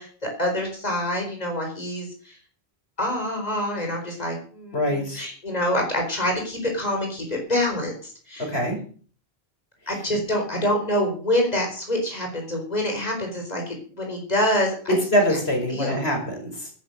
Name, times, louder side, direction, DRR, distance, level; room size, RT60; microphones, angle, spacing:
voice 1, 0.0-2.4 3.0-8.5 9.9-15.0 15.3-15.4 15.7-16.0, left 1 dB, 40° left, 1 dB, 4.6 m, -26 dB
voice 2, 4.7-5.2 8.5-8.8 15.1-16.7, equal, 80° left, 2 dB, 5.4 m, -24 dB
13.5 x 11.0 x 6.6 m, 0.43 s
omnidirectional pair, 1.0 m